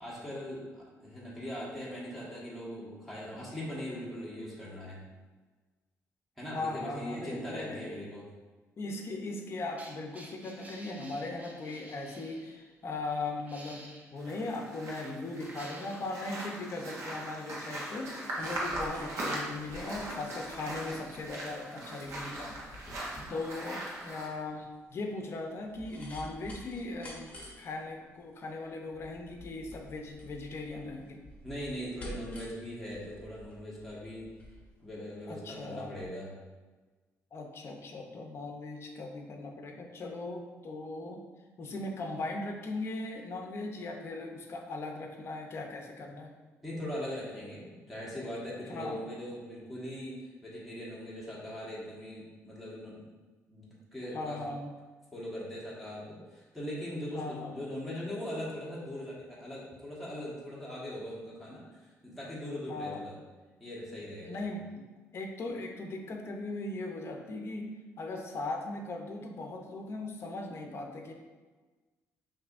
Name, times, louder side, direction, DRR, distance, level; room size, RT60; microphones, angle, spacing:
voice 1, 0.0-5.0 6.4-8.3 31.4-34.3 34.8-36.3 46.6-53.1 53.5-54.4 55.1-63.1 63.6-64.4, equal, ahead, -7 dB, 1.3 m, -40 dB
voice 2, 6.5-7.9 8.8-31.2 35.3-35.9 37.3-41.2 41.6-46.3 48.7-49.0 54.1-54.7 57.1-57.6 62.7-63.0 64.2-64.8 65.1-67.7 68.0-71.1, left 2 dB, 50° left, 2 dB, 0.6 m, -39 dB
sound 1, 9.0-12.6 13.4-14.2 15.2-16.2 17.0-17.1, right 1 dB, 25° right, 0.6 m, -52 dB
sound 2, 14.2-24.3, right 1 dB, 60° right, 1.0 m, -40 dB
sound 3, 18.1-35.7 36.0-36.1, left 1 dB, 25° left, 1.0 m, -50 dB
5.9 x 2.7 x 2.5 m, 1.3 s
cardioid pair, 95°, 6 cm